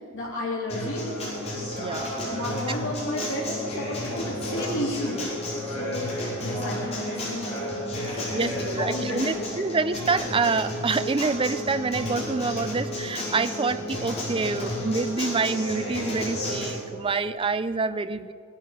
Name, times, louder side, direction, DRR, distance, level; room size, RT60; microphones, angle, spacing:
voice 1, 0.1-1.0 2.3-5.2 5.8-9.5, left 1 dB, 60° left, -5 dB, 3.4 m, -33 dB
Acoustic guitar, 0.7-16.7, left 1 dB, 30° left, 5.7 m, -32 dB
voice 2, 1.8-2.1 8.3-18.3, right 4 dB, 25° right, 12 dB, 0.5 m, -27 dB
18.0 x 12.0 x 6.7 m, 2.2 s
head